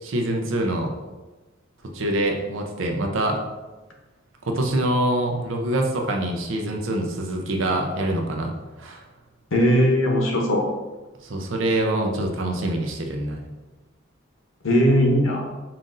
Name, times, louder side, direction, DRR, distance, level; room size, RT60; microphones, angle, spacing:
voice 1, 0.0-0.9 1.9-3.4 4.4-8.5 8.8-9.0 11.2-13.4, right 1 dB, 80° right, 2 dB, 0.6 m, -25 dB
voice 2, 9.5-10.7 14.6-15.5, equal, 75° left, 1 dB, 0.8 m, -19 dB
5.6 x 2.5 x 2.5 m, 1.2 s
head